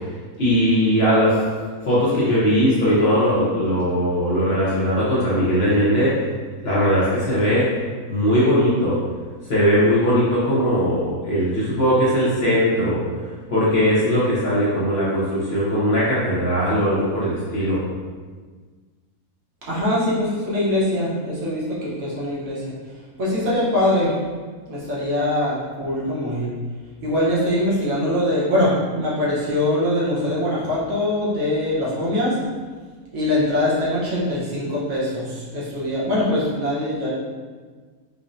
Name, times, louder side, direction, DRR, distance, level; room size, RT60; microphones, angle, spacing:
voice 1, 0.4-1.4 1.9-6.1 6.6-7.7 8.1-9.0 9.5-13.0 13.5-17.8, equal, 50° left, -9 dB, 0.9 m, -19 dB
voice 2, 19.6-22.7 23.2-24.1 24.7-26.5 27.0-32.4 33.1-37.1, left 1 dB, 65° right, -7 dB, 1.3 m, -22 dB
5.1 x 2.1 x 2.5 m, 1.5 s
omnidirectional pair, 1.6 m